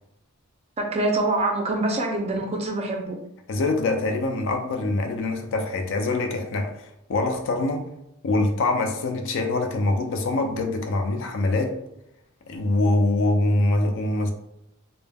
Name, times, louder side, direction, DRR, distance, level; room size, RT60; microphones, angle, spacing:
voice 1, 0.8-3.2, right 2 dB, 30° right, 2 dB, 0.4 m, -25 dB
voice 2, 3.5-6.7 7.1-7.8 8.2-11.8 12.5-14.3, left 2 dB, 60° left, 4 dB, 0.4 m, -24 dB
2.2 x 2.0 x 3.3 m, 0.80 s
head